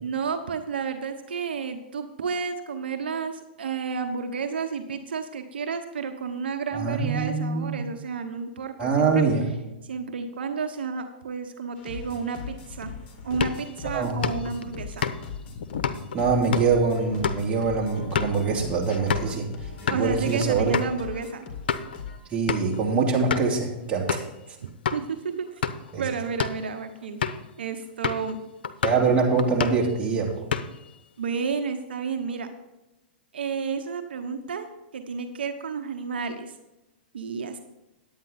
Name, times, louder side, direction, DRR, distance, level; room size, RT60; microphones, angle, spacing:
voice 1, 0.0-9.2 9.9-12.9 13.2-15.1 19.9-21.4 24.6-25.6 26.0-27.2 27.6-28.4 31.2-32.5 33.3-34.7 34.9-36.5 37.1-37.6, right 5 dB, 85° right, 7 dB, 0.9 m, -31 dB
voice 2, 6.7-7.8 8.8-9.5 13.8-14.2 16.1-19.5 19.9-20.7 22.3-24.2 25.9-26.0 28.8-30.4, right 4 dB, 20° right, -3 dB, 2.9 m, -24 dB
sound 1, 11.7-22.2, left 5 dB, 40° left, 2.4 m, -39 dB
sound 2, 13.3-19.4 19.7-20.0 20.4-20.5 20.7-20.9 21.4-22.0 22.5-22.8 23.3-23.6 24.1-24.3 24.8-25.0 25.5-25.9 26.3-26.6 27.2-27.5 28.0-28.3 28.6-29.1 29.4-29.9 30.3-30.9, left 7 dB, 80° left, 0.7 m, -30 dB
10.5 x 8.8 x 4.1 m, 0.98 s
hypercardioid pair, 120°, 5 cm